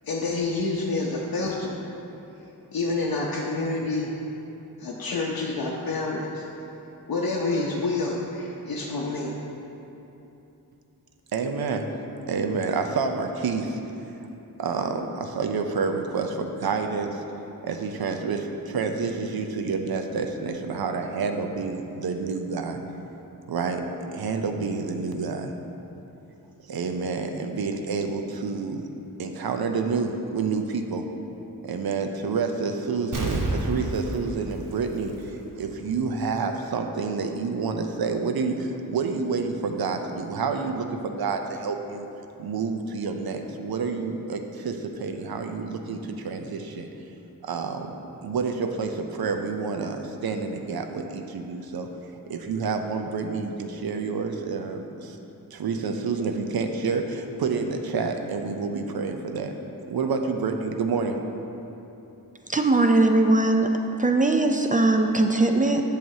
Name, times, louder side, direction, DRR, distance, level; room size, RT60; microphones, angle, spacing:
voice 1, 0.0-1.7 2.7-4.1 4.8-6.4 7.1-9.4, left 3 dB, 70° left, -3 dB, 0.7 m, -28 dB
voice 2, 11.3-11.9 12.3-13.8 14.6-17.2 17.6-22.8 23.5-23.8 24.1-25.5 26.7-28.9 29.2-31.0 31.6-42.1 42.4-46.9 47.4-51.9 52.3-55.2 55.5-59.6 59.8-61.2, right 4 dB, 80° right, 5 dB, 0.6 m, -28 dB
Explosion, 33.1-35.7 36.1-36.2, right 2 dB, 60° right, 0.9 m, -30 dB
voice 3, 62.5-63.7 64.0-65.8, right 2 dB, 25° right, 4 dB, 0.4 m, -20 dB
7.5 x 6.6 x 2.7 m, 2.9 s
wide cardioid pair, 75°, 36 cm